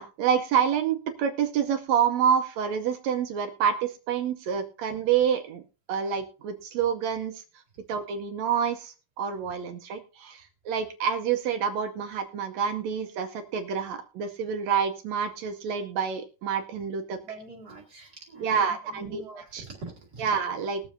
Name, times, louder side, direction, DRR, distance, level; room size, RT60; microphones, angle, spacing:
voice 1, 0.0-5.6 5.9-7.4 7.9-17.2 18.4-19.2 19.5-19.6 20.2-20.8, right 7 dB, 75° right, 7 dB, 1.8 m, -27 dB
voice 2, 17.2-18.6 18.9-20.3, right 3 dB, 35° right, -2 dB, 2.4 m, -44 dB
20.5 x 7.0 x 2.6 m, 0.34 s
omnidirectional pair, 3.6 m